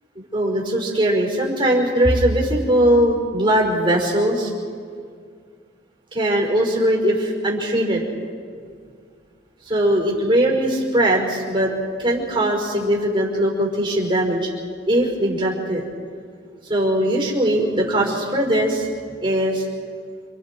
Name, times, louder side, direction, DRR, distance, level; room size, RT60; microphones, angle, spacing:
voice 1, 0.2-4.5 6.1-8.1 9.7-11.7 12.0-14.4 14.9-15.9 16.7-18.9 19.2-19.6, right 1 dB, 30° right, -1 dB, 5.3 m, -20 dB
28.5 x 28.5 x 4.6 m, 2.1 s
head